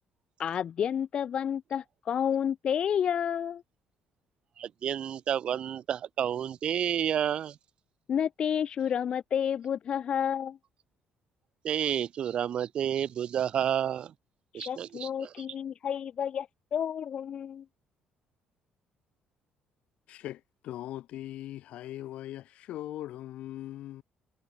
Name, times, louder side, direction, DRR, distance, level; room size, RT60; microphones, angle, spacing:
voice 1, 0.4-3.6 8.1-10.6 14.5-17.6, left 8 dB, 50° left, 1.6 m, -30 dB
voice 2, 4.6-7.5 11.6-14.1 14.5-15.3, right 9 dB, 55° right, 1.0 m, -30 dB
voice 3, 20.1-24.0, left 13 dB, 75° left, 5.7 m, -40 dB
cardioid pair, 115°, 2 cm